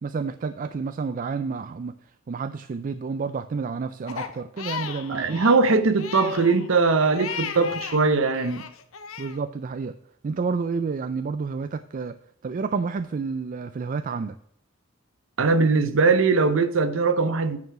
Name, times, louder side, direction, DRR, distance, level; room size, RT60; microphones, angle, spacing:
voice 1, 0.0-2.0 2.3-5.4 7.6-7.7 9.2-9.9 10.2-12.2 12.4-14.4, right 4 dB, 40° right, 0.3 m, -30 dB
Crying sobbing, 4.1-8.0 8.3-9.4, left 6 dB, 90° left, 0.7 m, -35 dB
voice 2, 5.1-8.6 15.4-17.6, right 4 dB, 70° right, 0.7 m, -21 dB
9.4 x 4.6 x 5.8 m
head